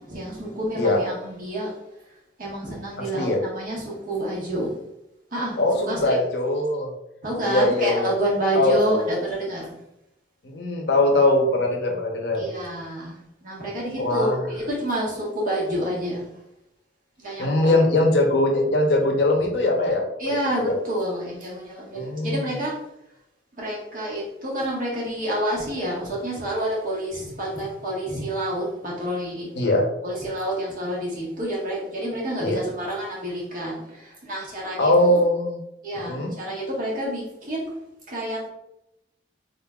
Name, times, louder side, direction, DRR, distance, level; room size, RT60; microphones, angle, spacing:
voice 1, 0.0-1.7 2.4-4.7 5.3-6.2 7.2-9.7 12.3-16.2 17.2-17.8 20.2-22.8 23.6-29.5 30.0-35.2 35.8-37.8 38.1-38.5, right 1 dB, 50° right, -4 dB, 1.3 m, -28 dB
voice 2, 3.0-3.4 5.6-6.9 7.4-8.1 8.5-9.0 10.4-12.4 14.0-14.4 17.4-20.0 20.6-20.7 21.9-22.4 29.5-29.9 32.4-32.6 34.8-35.6 35.9-36.3, left 2 dB, 70° left, 1 dB, 0.8 m, -21 dB
3.7 x 3.6 x 2.3 m, 0.84 s
head